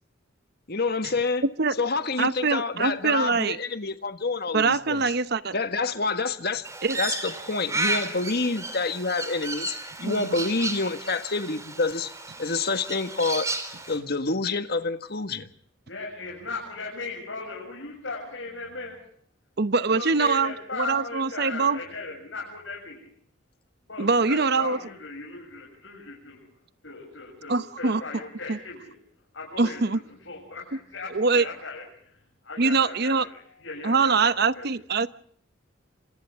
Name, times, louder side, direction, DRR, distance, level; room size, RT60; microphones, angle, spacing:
voice 1, 0.7-1.4 1.8-5.0 5.5-6.6 7.0-12.1 12.4-13.5 13.9-15.5, left 3 dB, 55° left, 1.6 m, -27 dB
voice 2, 1.4-1.8 2.2-3.6 4.5-5.6 6.8-7.0 10.0-10.3 19.6-21.8 24.0-24.8 27.5-28.0 28.5-28.6 29.6-30.0 31.1-31.5 32.6-33.3 33.8-35.1, right 4 dB, 55° right, 0.9 m, -23 dB
Crow, 6.6-14.0, right 2 dB, 15° right, 3.5 m, -33 dB
voice 3, 15.9-19.0 19.9-23.1 23.9-26.4 26.8-28.9 29.3-29.8 30.3-31.8 32.5-34.3 34.5-34.7, left 3 dB, 70° left, 7.3 m, -37 dB
28.5 x 26.5 x 3.6 m
head